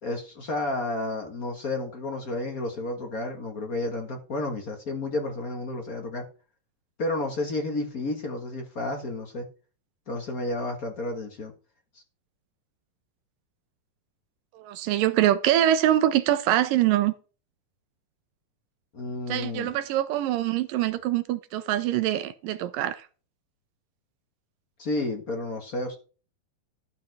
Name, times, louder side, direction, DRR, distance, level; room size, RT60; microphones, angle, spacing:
voice 1, 0.0-6.2 7.0-9.5 10.1-11.5 18.9-19.7 24.8-26.0, left 2 dB, 50° left, 1.0 m, -31 dB
voice 2, 14.5-17.1 19.3-23.1, right 12 dB, 80° right, 2.3 m, -24 dB
13.0 x 6.6 x 4.8 m
omnidirectional pair, 4.1 m